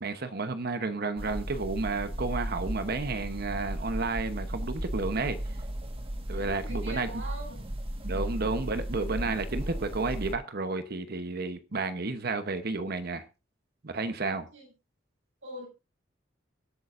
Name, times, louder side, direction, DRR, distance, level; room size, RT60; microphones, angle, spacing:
voice 1, 0.0-5.4 6.3-7.1 8.0-13.2 13.8-14.5, right 3 dB, 55° right, 0.9 m, -31 dB
sound 1, 1.2-10.3, right 1 dB, 30° right, 1.5 m, -35 dB
voice 2, 6.3-7.7 8.1-8.5 14.5-14.7 15.4-15.7, right 1 dB, 75° right, 7.1 m, -43 dB
24.0 x 8.5 x 2.6 m
head